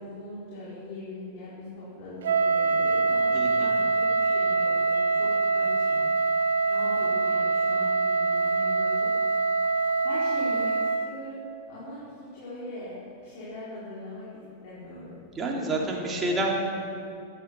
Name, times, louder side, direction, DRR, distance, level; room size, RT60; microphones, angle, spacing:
voice 1, 0.0-6.0 6.3-8.9 9.4-9.6 10.0-12.9 13.2-15.2 16.1-16.4, left 1 dB, 50° left, -8 dB, 4.8 m, -41 dB
Wind instrument woodwind instrument, 2.2-11.1, right 3 dB, 65° right, 0.9 m, -24 dB
voice 2, 3.3-3.7 15.3-16.5, right 2 dB, 20° right, -2 dB, 3.2 m, -28 dB
16.0 x 12.0 x 7.1 m, 2.5 s
figure-of-eight pair, 90°, 0 cm